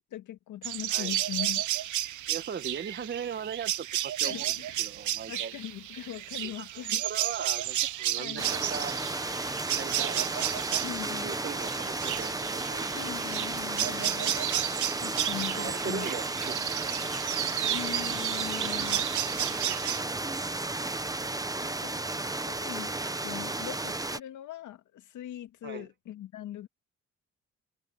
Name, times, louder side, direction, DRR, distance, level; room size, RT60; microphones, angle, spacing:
voice 1, 0.0-1.6 4.2-4.9 5.3-7.0 8.2-8.5 10.8-11.3 12.9-14.4 14.7-16.1 17.7-19.1 21.6-22.0 22.4-23.0 23.2-26.7, left 12 dB, 80° left, 2.2 m, -41 dB
sound 1, 0.6-20.0, right 13 dB, 75° right, 1.1 m, -32 dB
voice 2, 2.3-5.5 6.4-9.0 9.8-10.2 11.2-13.0 15.5-17.0 25.6-25.9, right 7 dB, 35° right, 1.3 m, -39 dB
sound 2, 8.4-24.2, right 2 dB, 10° right, 1.0 m, -33 dB
cardioid pair, 90°, 30 cm